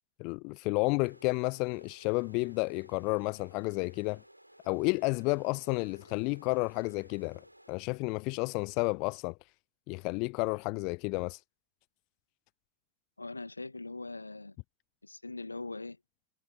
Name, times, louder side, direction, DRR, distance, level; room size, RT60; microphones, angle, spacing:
voice 1, 0.2-4.2 4.6-7.4 7.7-9.4 9.9-11.4, left 30 dB, 45° left, 0.6 m, -31 dB
sound 1, 1.0-7.7, right 1 dB, 90° right, 4.8 m, -58 dB
voice 2, 13.2-14.6 15.0-16.0, left 3 dB, 80° left, 2.0 m, -41 dB
figure-of-eight pair, 90°, 0 cm